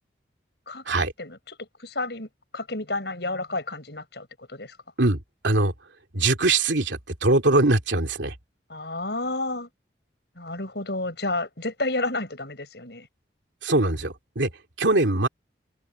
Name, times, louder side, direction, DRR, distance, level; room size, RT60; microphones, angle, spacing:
voice 1, 0.7-2.3 2.5-4.8 8.7-9.7 10.4-13.1, left 2 dB, 65° left, 6.2 m, -31 dB
voice 2, 6.1-8.3 13.6-14.5 14.8-15.3, right 2 dB, 80° right, 2.8 m, -22 dB
head